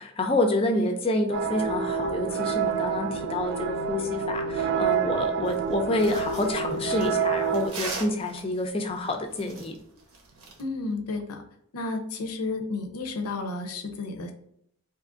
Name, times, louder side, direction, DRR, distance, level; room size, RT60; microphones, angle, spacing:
voice 1, 0.2-9.8, left 1 dB, 25° left, 4 dB, 0.4 m, -28 dB
sound 1, 1.3-7.7, right 6 dB, 50° right, 0.3 m, -28 dB
sound 2, 5.5-10.6, right 3 dB, 80° right, 0.8 m, -40 dB
voice 2, 10.6-11.4 11.7-14.3, left 3 dB, 85° left, 4 dB, 0.6 m, -32 dB
2.8 x 2.5 x 3.6 m, 0.72 s
head